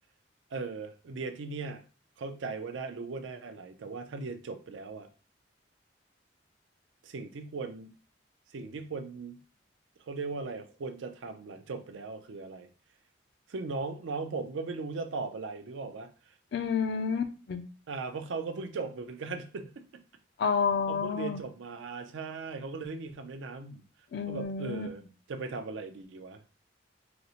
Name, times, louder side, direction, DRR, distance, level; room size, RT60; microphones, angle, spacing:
voice 1, 0.5-1.8 2.2-5.1 7.0-7.9 8.5-9.4 10.1-12.7 13.5-16.1 17.9-19.8 20.9-23.9 24.3-25.0 25.3-26.4, right 4 dB, 75° right, 8 dB, 0.4 m, -38 dB
voice 2, 16.5-17.6 20.4-21.4 24.1-24.9, left 6 dB, 60° left, 9 dB, 0.3 m, -30 dB
3.9 x 2.0 x 2.8 m, 0.36 s
head